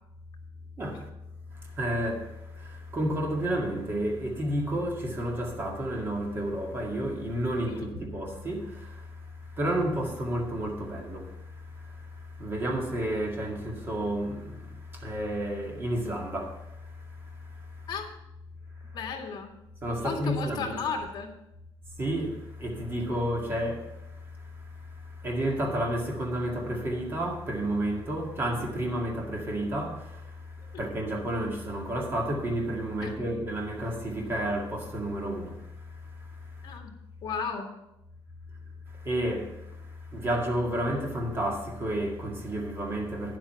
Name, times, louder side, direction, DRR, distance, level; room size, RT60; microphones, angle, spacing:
voice 1, 0.8-1.1 1.5-17.9 18.8-19.0 19.8-20.8 22.0-36.8 38.9-43.4, right 1 dB, 25° right, 2.0 m, -31 dB
voice 2, 18.9-19.5 20.0-21.3 33.0-33.1 36.6-36.9 37.2-37.7, left 5 dB, 50° left, 2.0 m, -34 dB
10.0 x 7.7 x 5.7 m
cardioid pair, 170°, 9 cm